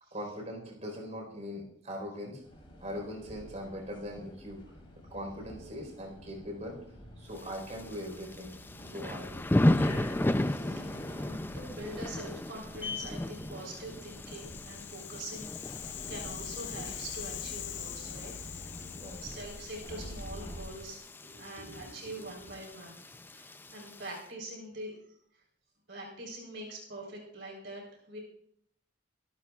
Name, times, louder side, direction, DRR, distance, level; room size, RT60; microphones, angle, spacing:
voice 1, 0.1-2.4 2.8-4.6 5.1-6.8 7.2-8.5 8.8-9.5 18.9-19.2 21.2-21.9 22.2-22.5, equal, 40° right, 1 dB, 4.2 m, -41 dB
sound 1, 2.4-20.8, left 2 dB, 30° left, 4.1 m, -47 dB
Thunder / Rain, 7.3-24.2, left 1 dB, 10° left, 0.4 m, -35 dB
voice 2, 10.4-18.3 19.2-21.1 21.4-25.0 25.3-25.4 25.9-28.2, right 1 dB, 70° right, -1 dB, 3.9 m, -44 dB
Rattle (instrument), 13.9-22.1, left 12 dB, 70° left, 0.7 m, -44 dB
24.0 x 12.5 x 2.4 m, 0.70 s
head